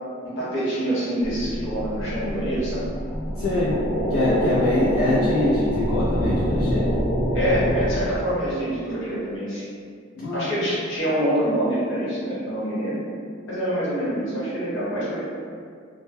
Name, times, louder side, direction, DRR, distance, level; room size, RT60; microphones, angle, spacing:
voice 1, 0.2-2.8 7.3-9.7 10.3-13.0 13.5-15.2, equal, 70° left, -9 dB, 1.0 m, -26 dB
sound 1, 1.2-8.2, equal, 5° right, 0.5 m, -25 dB
voice 2, 3.4-3.8 4.1-6.9 10.2-10.5, left 2 dB, 85° left, -7 dB, 0.4 m, -24 dB
2.1 x 2.0 x 3.2 m, 2.2 s
head